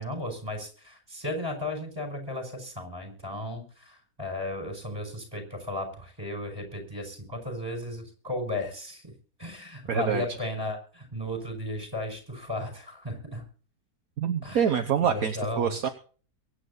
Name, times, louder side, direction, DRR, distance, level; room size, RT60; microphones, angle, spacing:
voice 1, 0.0-9.1 9.4-13.5 14.4-14.7 15.0-15.7, left 1 dB, 15° right, 5 dB, 5.7 m, -35 dB
voice 2, 9.9-10.4 14.2-15.9, right 8 dB, 60° right, 6 dB, 1.4 m, -26 dB
23.0 x 9.6 x 4.1 m, 0.41 s
omnidirectional pair, 1.7 m